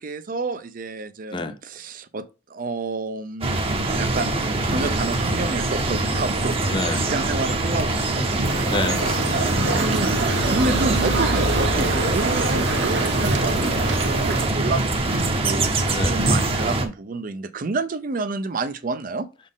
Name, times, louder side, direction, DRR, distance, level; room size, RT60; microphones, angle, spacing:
voice 1, 0.0-8.7 9.7-19.3, right 3 dB, 50° right, 0.5 m, -30 dB
sound 1, 3.4-16.9, right 2 dB, 30° right, 0.8 m, -23 dB
voice 2, 6.7-7.1 8.7-10.1 15.9-16.2, left 2 dB, 25° left, 0.5 m, -29 dB
sound 2, 8.4-14.5, right 2 dB, 70° right, 1.3 m, -26 dB
6.2 x 4.2 x 3.6 m
head